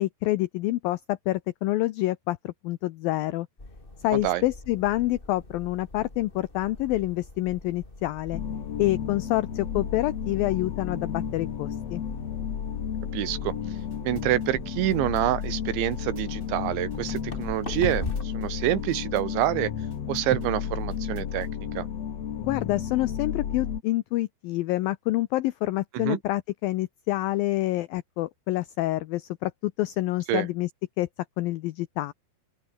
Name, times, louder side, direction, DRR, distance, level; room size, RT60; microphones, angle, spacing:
voice 1, 0.0-3.5 4.0-8.4 8.8-12.0 22.4-30.7 31.0-31.1 31.4-32.1, left 17 dB, 90° left, 2.0 m, -27 dB
sound 1, 3.6-18.2, left 2 dB, 10° left, 3.6 m, -42 dB
voice 2, 4.1-4.4 13.1-13.6 14.0-18.1 18.3-19.7 20.1-21.5 21.8-21.9 25.9-26.2 30.3-30.5, right 14 dB, 85° right, 3.9 m, -27 dB
sound 2, 8.3-23.8, left 8 dB, 50° left, 2.4 m, -33 dB
sound 3, 13.8-21.5, right 2 dB, 20° right, 7.9 m, -54 dB
open air
omnidirectional pair, 5.1 m